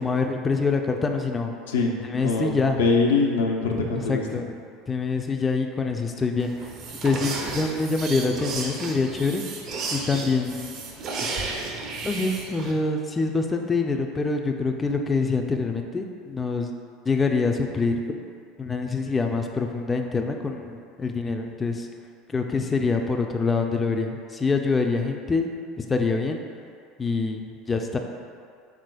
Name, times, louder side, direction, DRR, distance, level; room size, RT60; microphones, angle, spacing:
voice 1, 0.0-1.5 2.1-2.8 3.7-4.5 4.9-6.5 7.0-9.4 9.9-10.7 12.0-16.7 17.1-18.2 18.6-21.9 22.3-25.5 25.9-26.4 27.0-28.0, left 4 dB, 20° left, 3 dB, 0.3 m, -25 dB
voice 2, 1.7-4.4, left 3 dB, 85° left, 0 dB, 0.4 m, -24 dB
sound 1, 6.4-12.7, right 3 dB, 50° right, 0.5 m, -33 dB
4.8 x 3.6 x 2.2 m, 2.3 s
hypercardioid pair, 85°, 0 cm